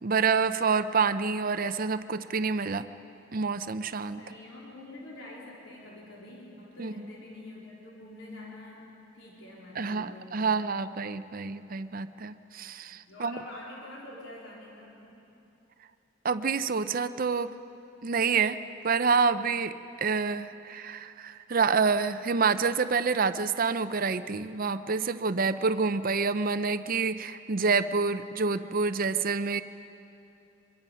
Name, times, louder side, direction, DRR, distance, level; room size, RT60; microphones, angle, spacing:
voice 1, 0.0-2.9 3.3-4.2 6.8-7.1 9.8-13.4 16.2-17.5 18.0-18.6 18.8-29.6, right 5 dB, 45° right, 12 dB, 0.6 m, -27 dB
voice 2, 4.0-10.6 12.9-15.2, left 1 dB, 75° left, -4 dB, 3.8 m, -46 dB
24.5 x 23.0 x 5.7 m, 2.8 s
head